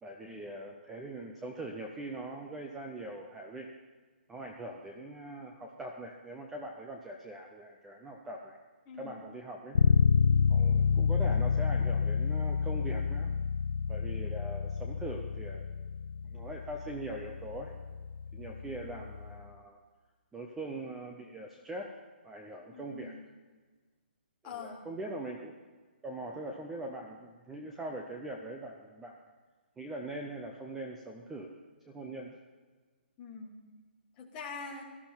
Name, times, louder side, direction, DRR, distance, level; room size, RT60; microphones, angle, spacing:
voice 1, 0.0-3.7 4.3-8.6 9.0-9.8 10.5-13.3 13.9-15.7 16.3-17.7 18.3-19.8 20.3-21.9 22.2-23.1 24.4-25.5 26.0-29.2 29.8-31.5 31.9-32.4, right 1 dB, 5° right, 1 dB, 0.4 m, -42 dB
voice 2, 8.9-9.2 22.7-23.3 24.4-24.8 33.2-33.5 34.2-34.8, left 5 dB, 15° left, -1 dB, 1.4 m, -44 dB
Bass guitar, 9.7-19.5, left 6 dB, 85° left, 0.6 m, -29 dB
17.5 x 13.5 x 4.4 m, 1.4 s
hypercardioid pair, 180°, 6 cm